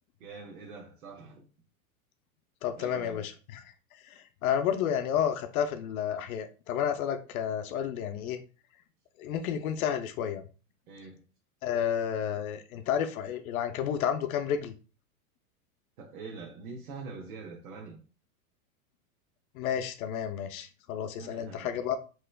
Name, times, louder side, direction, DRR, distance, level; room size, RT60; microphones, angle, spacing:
voice 1, 0.2-1.5 2.8-3.2 10.9-11.2 16.0-18.0 21.2-21.7, right 4 dB, 85° right, 0.9 m, -44 dB
voice 2, 2.6-3.6 4.0-4.1 4.4-8.4 9.2-10.4 11.6-14.7 19.6-22.0, left 9 dB, 75° left, 0.6 m, -31 dB
3.2 x 3.0 x 2.2 m
supercardioid pair, 145°, 42 cm